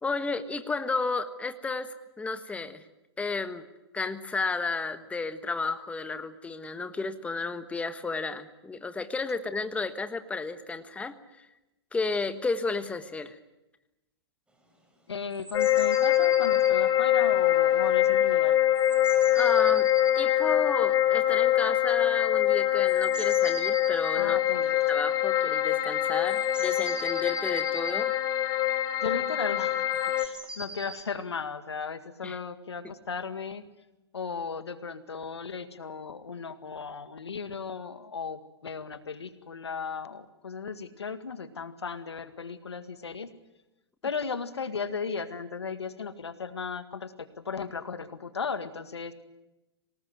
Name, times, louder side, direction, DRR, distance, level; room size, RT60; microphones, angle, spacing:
voice 1, 0.0-2.8 3.2-3.6 3.9-11.5 11.9-13.4 19.3-19.9 20.1-24.4 24.9-28.1 32.2-32.4, left 3 dB, 10° left, 10 dB, 1.4 m, -32 dB
voice 2, 15.1-18.6 24.2-24.8 29.0-29.9 30.2-33.6 34.1-43.3 44.0-49.1, left 5 dB, 90° left, 11 dB, 2.0 m, -36 dB
sound 1, 15.3-16.8 18.0-18.1 18.4-18.5 18.7-20.3 22.8-24.3 25.5-25.6 25.8-25.9 26.2-28.0 29.9-31.0, right 2 dB, 5° right, 5.5 m, -41 dB
sound 2, 15.5-30.3, left 12 dB, 25° left, 1.7 m, -24 dB
25.5 x 19.0 x 9.5 m, 0.99 s
hypercardioid pair, 120°, 14 cm